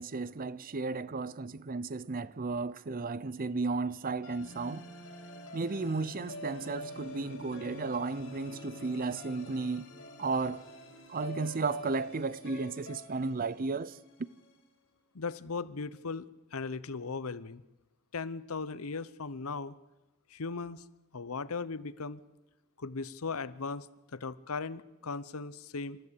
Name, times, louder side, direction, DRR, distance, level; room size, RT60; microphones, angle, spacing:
voice 1, 0.0-4.9 5.5-9.9 10.2-10.6 11.1-13.9, right 3 dB, 40° right, 0.6 m, -34 dB
sound 1, 4.2-14.5, left 1 dB, 65° left, 3.8 m, -47 dB
voice 2, 15.1-17.6 18.1-19.7 20.3-20.8 21.1-22.2 22.8-26.0, left 4 dB, 85° left, 0.9 m, -38 dB
27.5 x 13.5 x 8.4 m
head